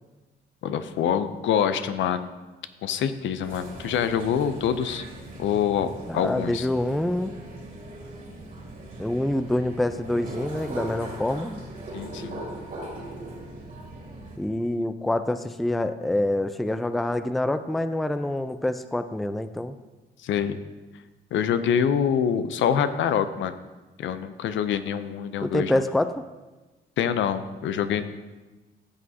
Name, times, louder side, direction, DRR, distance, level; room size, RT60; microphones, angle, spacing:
voice 1, 0.6-2.3 2.8-5.0 5.4-6.7 11.9-12.4 20.2-20.6 21.3-23.6 24.0-25.8 27.0-28.0, left 8 dB, 75° left, 11 dB, 0.6 m, -25 dB
sound 1, 3.4-14.4, right 1 dB, 45° right, 2.5 m, -39 dB
voice 2, 6.1-7.3 9.0-11.6 14.4-19.8 25.4-26.2, left 1 dB, ahead, 11 dB, 0.3 m, -26 dB
14.0 x 6.3 x 2.8 m, 1.2 s
cardioid pair, 90°, 20 cm